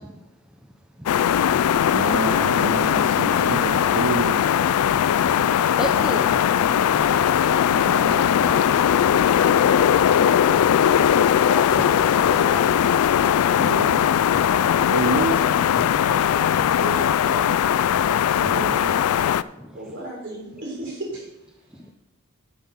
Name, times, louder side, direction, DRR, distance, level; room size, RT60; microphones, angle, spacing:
sound 1, 1.1-19.4, left 9 dB, 80° left, 0.3 m, -19 dB
voice 1, 1.9-4.4 7.6-8.6 13.6-15.5 18.0-18.9, right 4 dB, 75° right, 5 dB, 0.7 m, -30 dB
voice 2, 5.8-6.3 11.5-12.7 13.6-13.7 16.0-16.1 18.5-18.6, equal, 5° right, 2 dB, 0.6 m, -32 dB
voice 3, 16.7-17.5 19.7-21.2, right 2 dB, 55° right, -2 dB, 4.2 m, -34 dB
10.5 x 6.2 x 5.5 m, 0.88 s
head